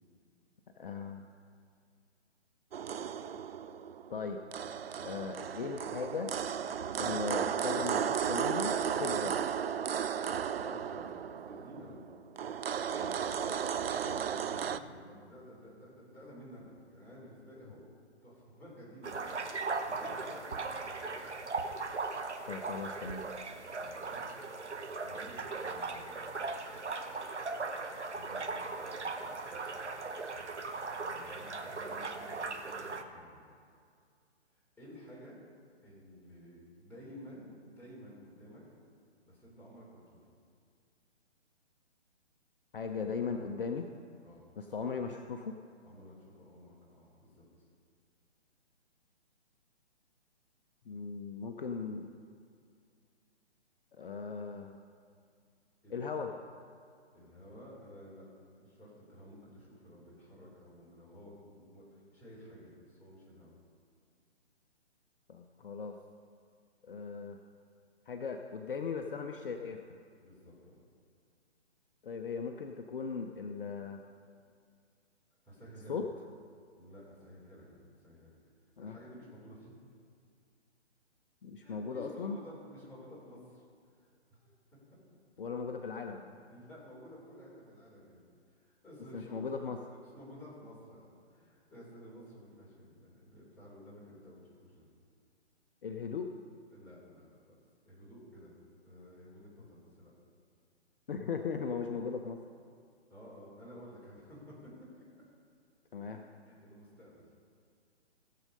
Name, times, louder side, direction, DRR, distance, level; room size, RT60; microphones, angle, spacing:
voice 1, 0.8-1.3 4.1-4.4 5.0-6.3 7.0-9.4 12.9-13.6 22.5-23.2 42.7-43.9 44.6-45.6 50.9-52.1 53.9-54.9 55.9-56.3 65.3-66.0 66.8-67.4 68.1-70.0 72.0-74.0 75.9-76.1 78.8-79.0 81.4-82.4 85.4-86.3 89.1-89.8 95.8-96.3 101.1-102.4 105.9-106.2, left 5 dB, 50° left, 5 dB, 0.8 m, -38 dB
sound 1, 2.7-14.8, right 8 dB, 60° right, 0.5 m, -34 dB
voice 2, 10.5-12.0 13.9-17.8 18.2-19.4 19.8-21.2 23.8-24.2 25.0-26.6 28.1-29.4 31.0-33.4 34.8-35.4 35.8-38.6 39.2-40.2 44.2-44.9 45.8-47.6 55.8-56.4 57.1-58.3 58.5-63.5 70.2-70.8 75.4-76.0 76.8-78.4 78.8-79.7 81.6-84.8 86.3-88.2 88.5-89.5 90.1-94.9 96.7-97.6 97.8-98.5 98.8-100.1 103.1-105.0 106.1-107.2, equal, 5° left, -7 dB, 3.5 m, -53 dB
sound 2, 19.0-33.0, right 3 dB, 85° right, 1.1 m, -38 dB
16.5 x 7.5 x 5.4 m, 2.3 s
figure-of-eight pair, 140°, 34 cm